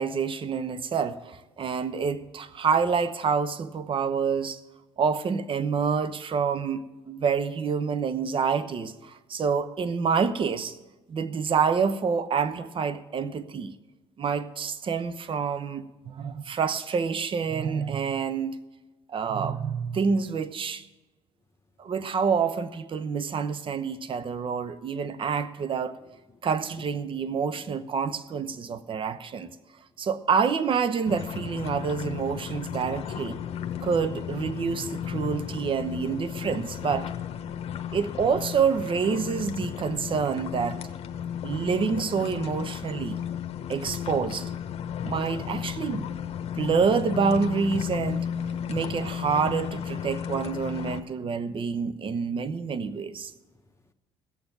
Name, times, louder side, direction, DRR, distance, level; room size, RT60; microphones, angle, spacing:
voice 1, 0.0-4.6 5.0-10.8 11.1-13.7 14.2-18.6 19.1-20.9 21.8-26.0 26.4-29.5 30.0-33.4 33.8-37.1 37.9-40.8 41.4-43.2 43.7-44.5 45.0-46.1 46.6-48.3 48.7-53.3, right 6 dB, 40° right, 0.9 m, -27 dB
voice 2, 26.0-26.4 26.7-26.9 27.1-27.4 28.5-28.6 32.8-33.0 53.5-53.9, left 4 dB, 20° left, 1.1 m, -53 dB
sound 1, 31.1-51.0, left 9 dB, 55° left, 1.0 m, -34 dB
15.5 x 7.0 x 8.0 m
hypercardioid pair, 65°, 13 cm